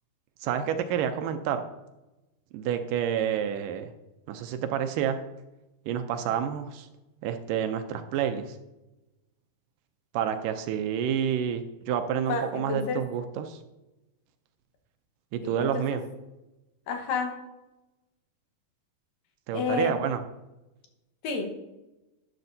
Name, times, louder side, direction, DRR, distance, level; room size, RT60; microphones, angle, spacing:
voice 1, 0.4-1.6 2.5-3.9 4.3-5.2 5.9-6.9 7.2-8.6 10.1-13.6 15.3-16.0 19.5-20.2, right 9 dB, 80° right, 8 dB, 2.2 m, -29 dB
voice 2, 12.3-13.0 15.4-16.0 16.9-17.3 19.5-20.0 21.2-21.5, left 4 dB, 75° left, 4 dB, 2.9 m, -30 dB
12.0 x 9.7 x 2.7 m, 0.99 s
omnidirectional pair, 3.9 m